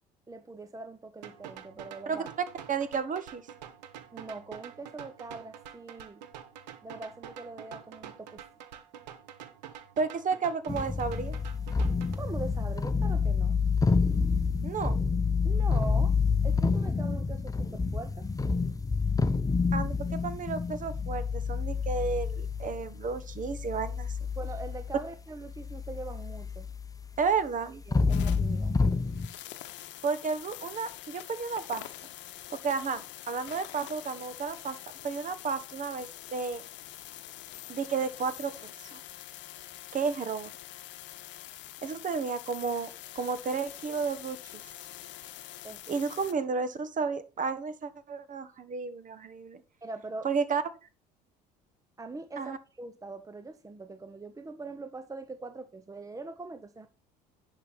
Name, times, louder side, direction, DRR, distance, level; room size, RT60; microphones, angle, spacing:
voice 1, 0.3-2.3 4.1-6.2 6.8-8.4 12.2-13.6 15.4-16.2 16.4-18.3 24.4-26.7 27.9-28.8 45.6-46.0 49.8-50.3 52.0-56.9, right 3 dB, 15° right, 0.8 m, -42 dB
sound 1, 1.2-12.2, right 9 dB, 85° right, 1.1 m, -47 dB
voice 2, 2.7-3.4 10.0-11.4 14.6-15.0 19.7-24.1 27.2-27.8 30.0-31.9 32.6-34.8 35.0-36.6 37.7-39.0 39.9-40.5 41.8-44.6 45.9-49.6 50.2-50.6 52.4-52.6, right 5 dB, 40° right, 1.3 m, -32 dB
sound 2, 10.7-27.3 27.8-29.3, left 4 dB, 15° left, 0.8 m, -28 dB
sound 3, 28.1-46.3, left 14 dB, 60° left, 0.9 m, -45 dB
10.5 x 5.6 x 4.3 m
hypercardioid pair, 65°, 21 cm